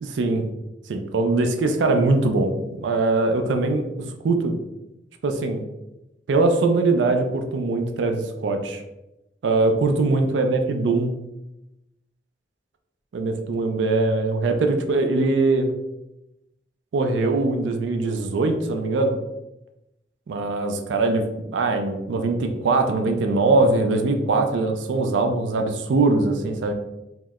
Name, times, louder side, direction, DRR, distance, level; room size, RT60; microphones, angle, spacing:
voice 1, 0.0-0.4 0.9-3.8 4.2-4.6 5.2-5.6 6.3-8.8 9.4-11.1 13.1-15.7 16.9-19.1 20.3-26.7, right 3 dB, 85° right, 5 dB, 0.4 m, -22 dB
2.8 x 2.1 x 3.4 m, 0.93 s
head